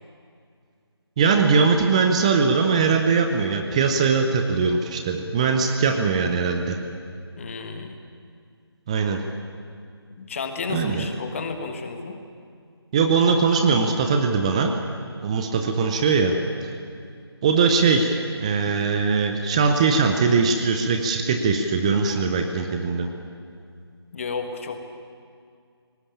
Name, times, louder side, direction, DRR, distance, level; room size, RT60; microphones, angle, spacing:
voice 1, 1.2-6.8 8.9-9.2 10.7-11.1 12.9-14.7 15.2-16.4 17.4-23.1, right 5 dB, 15° right, 5 dB, 0.7 m, -21 dB
voice 2, 7.4-8.0 10.2-12.2 24.1-24.8, left 4 dB, 30° left, 6 dB, 1.7 m, -32 dB
19.0 x 18.0 x 8.7 m, 2.3 s
figure-of-eight pair, 160°, 14 cm